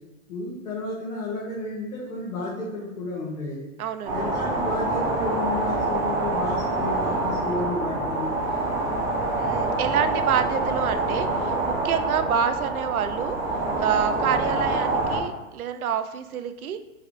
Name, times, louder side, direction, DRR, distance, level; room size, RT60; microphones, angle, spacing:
voice 1, 0.3-3.7 4.1-8.4, left 2 dB, 85° left, -6 dB, 1.4 m, -32 dB
voice 2, 3.8-4.3 9.4-13.4 13.8-16.8, right 8 dB, 90° right, 10 dB, 0.5 m, -27 dB
sound 1, 4.0-15.2, right 2 dB, 5° right, 0.7 m, -26 dB
3.5 x 3.5 x 3.5 m, 1.1 s
hypercardioid pair, 130°, 42 cm